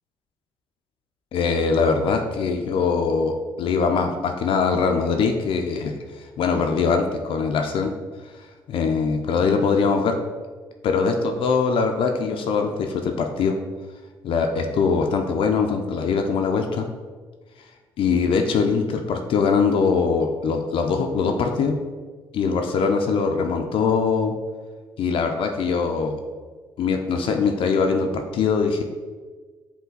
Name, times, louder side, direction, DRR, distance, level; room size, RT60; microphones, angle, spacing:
voice 1, 1.3-7.9 8.7-10.2 10.8-13.5 14.2-16.9 18.0-21.8 22.3-24.3 25.0-26.2 26.8-28.8, left 5 dB, 65° left, 4 dB, 0.4 m, -22 dB
5.5 x 2.2 x 3.9 m, 1.4 s
supercardioid pair, 60°, 10 cm